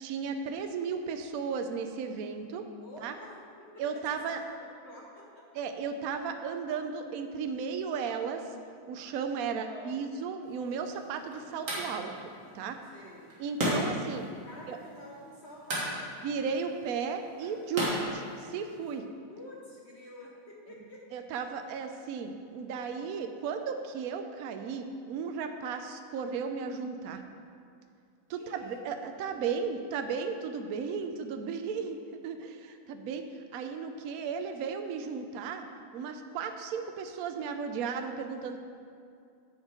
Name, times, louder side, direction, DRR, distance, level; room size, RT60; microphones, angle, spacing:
voice 1, 0.0-2.6 3.0-3.1 3.8-4.4 5.5-8.4 8.9-12.8 13.4-14.3 14.7-14.8 16.2-19.0 21.1-27.2 28.3-33.3 33.5-35.6 35.9-38.6, right 6 dB, 75° right, 7 dB, 0.8 m, -35 dB
voice 2, 2.8-5.4 9.5-10.0 12.9-13.3 14.4-16.1 19.3-21.2 28.3-29.3, left 1 dB, 45° left, -3 dB, 0.9 m, -49 dB
sound 1, 10.4-19.0, equal, 40° right, 2.2 m, -36 dB
8.2 x 7.1 x 5.0 m, 2.4 s
omnidirectional pair, 2.2 m